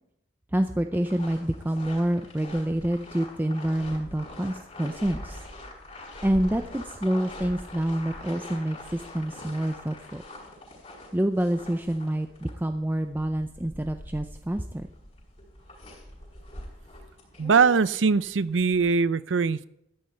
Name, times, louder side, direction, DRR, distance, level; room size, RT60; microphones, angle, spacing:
voice 1, 0.5-5.4 6.2-10.2 11.1-14.9, right 1 dB, 10° right, 7 dB, 0.4 m, -27 dB
sound 1, 0.9-18.9, left 1 dB, 30° left, 5.4 m, -44 dB
voice 2, 17.4-19.7, right 5 dB, 90° right, 17 dB, 0.5 m, -22 dB
13.5 x 10.5 x 4.4 m, 0.81 s
head